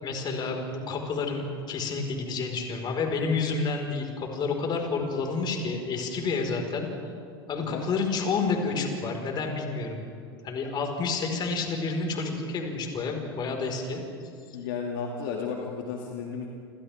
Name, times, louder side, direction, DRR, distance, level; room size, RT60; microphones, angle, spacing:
voice 1, 0.0-6.9 7.5-10.0 10.4-14.0, left 4 dB, 35° left, 2 dB, 4.9 m, -29 dB
voice 2, 14.5-16.5, left 6 dB, 60° left, 0 dB, 2.5 m, -33 dB
29.5 x 28.0 x 3.6 m, 2.4 s
figure-of-eight pair, 85°, 13 cm